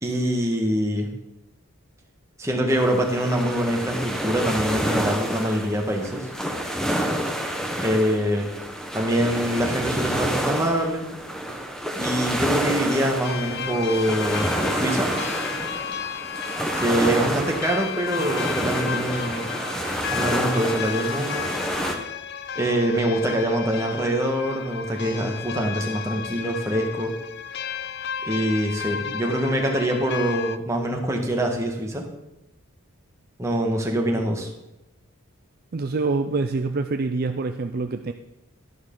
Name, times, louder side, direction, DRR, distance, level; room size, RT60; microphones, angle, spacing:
voice 1, 0.0-1.1 2.4-6.3 7.8-8.5 8.9-11.1 12.0-15.1 16.8-19.5 20.1-21.5 22.5-27.2 28.2-32.0 33.4-34.5, right 1 dB, 15° right, 1 dB, 1.6 m, -24 dB
sound 1, 2.7-21.9, equal, 5° left, 1.0 m, -28 dB
sound 2, 13.2-30.6, left 7 dB, 50° left, 0.5 m, -33 dB
voice 2, 35.7-38.1, right 3 dB, 45° right, 7 dB, 0.5 m, -25 dB
12.0 x 11.0 x 3.9 m, 0.95 s
head